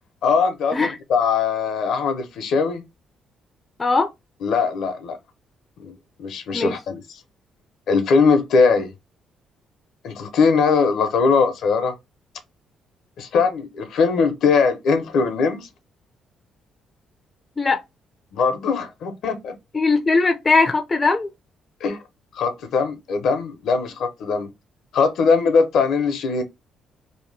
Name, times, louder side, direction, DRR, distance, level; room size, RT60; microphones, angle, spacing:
voice 1, 0.2-2.8 4.4-5.2 5.8-5.9 6.2-7.0 7.9-8.9 10.0-11.9 13.2-15.7 18.3-19.5 21.8-22.0 22.3-24.5 24.9-26.4, left 5 dB, 75° left, 0.8 m, -20 dB
voice 2, 3.8-4.1 6.5-6.7 17.6-17.8 19.7-21.3, left 3 dB, 25° left, 0.4 m, -19 dB
2.9 x 2.1 x 3.2 m
cardioid pair, 105°, 0 cm